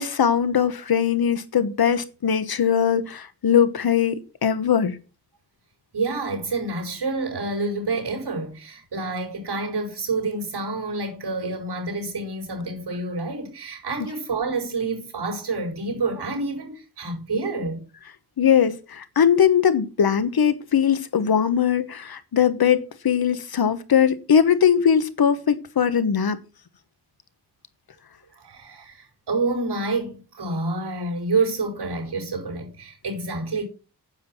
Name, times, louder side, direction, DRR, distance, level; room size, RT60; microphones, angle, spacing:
voice 1, 0.0-5.0 18.4-26.4, left 8 dB, 65° left, 1.2 m, -20 dB
voice 2, 5.9-17.8 28.3-33.6, right 3 dB, 85° right, 4.7 m, -28 dB
9.6 x 7.4 x 6.0 m
wide cardioid pair, 155°, 39 cm